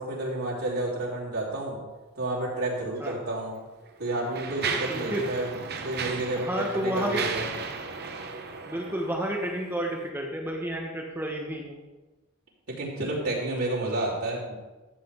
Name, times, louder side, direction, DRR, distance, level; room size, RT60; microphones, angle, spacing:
voice 1, 0.0-1.8 2.2-3.6 4.0-7.4 12.7-14.5, right 2 dB, 90° right, -6 dB, 3.5 m, -30 dB
Mechanisms, 3.0-3.1 3.8-9.6, right 5 dB, 50° right, 0.8 m, -35 dB
voice 2, 4.9-5.2 6.3-7.3 8.7-11.8, equal, 10° right, 0 dB, 1.0 m, -31 dB
13.5 x 7.5 x 3.6 m, 1.2 s
head